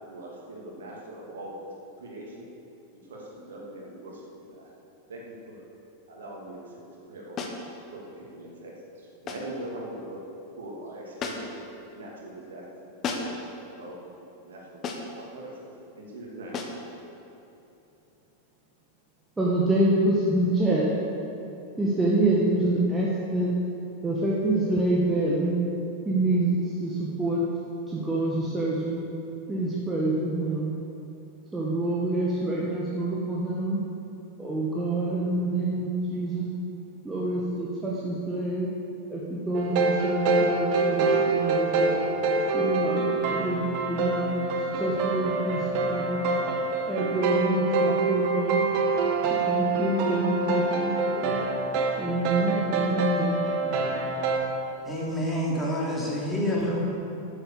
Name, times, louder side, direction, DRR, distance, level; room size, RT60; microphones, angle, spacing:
voice 1, 0.1-1.6 2.0-2.5 3.1-4.7 5.1-5.6 6.1-10.2 10.6-11.6 11.9-12.6 13.1-13.3 13.7-14.0 14.4-14.8 15.2-15.7 15.9-16.5, right 1 dB, 65° right, -3 dB, 2.7 m, -42 dB
sound 1, 7.4-7.7 9.3-9.6 11.2-11.6 13.0-13.5 14.8-15.2 16.5-16.8, left 4 dB, 30° left, 1.4 m, -33 dB
voice 2, 19.4-20.9 21.8-23.5 24.0-25.6 26.0-27.4 27.9-29.0 29.5-30.7 31.5-33.8 34.4-36.5 37.0-38.7 39.1-42.0 42.5-44.4 44.7-46.2 46.9-48.7 49.3-51.4 52.0-53.4, right 2 dB, 10° right, -5 dB, 1.7 m, -27 dB
sound 2, 39.5-54.4, right 3 dB, 45° right, 1.5 m, -26 dB
voice 3, 54.8-56.8, equal, 10° left, -5 dB, 3.2 m, -27 dB
13.5 x 8.0 x 7.1 m, 3.0 s
figure-of-eight pair, 90°, 0 cm